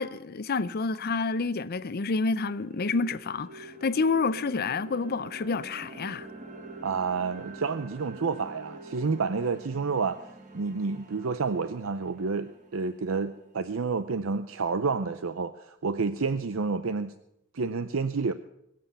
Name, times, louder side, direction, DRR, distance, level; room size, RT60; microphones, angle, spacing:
voice 1, 0.0-6.3, left 4 dB, 50° left, 0.6 m, -29 dB
sound 1, 1.3-1.4 1.9-13.9, right 2 dB, 40° right, 1.5 m, -46 dB
voice 2, 6.8-10.2 10.5-17.1 17.5-18.3, right 4 dB, 70° right, 0.6 m, -29 dB
22.5 x 7.7 x 7.0 m
head